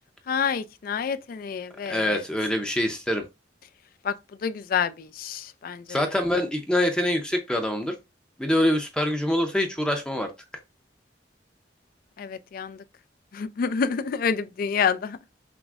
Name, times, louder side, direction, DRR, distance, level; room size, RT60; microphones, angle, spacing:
voice 1, 0.3-2.2 4.0-4.1 4.4-5.8 12.2-12.8 13.3-15.2, left 6 dB, 55° left, 0.3 m, -28 dB
voice 2, 1.9-3.2 5.9-7.9 8.4-10.3, left 1 dB, 5° left, 0.5 m, -25 dB
5.8 x 2.0 x 2.4 m
head